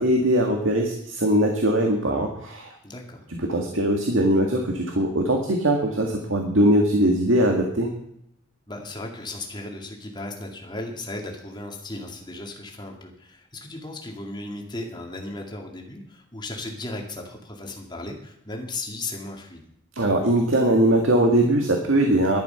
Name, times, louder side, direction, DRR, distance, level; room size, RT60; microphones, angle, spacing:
voice 1, 0.0-2.8 3.3-7.9 20.0-22.4, right 1 dB, 85° right, 2 dB, 1.9 m, -21 dB
voice 2, 2.8-3.2 8.7-19.6, left 2 dB, 20° left, 1 dB, 2.3 m, -36 dB
12.0 x 11.0 x 5.8 m, 0.75 s
head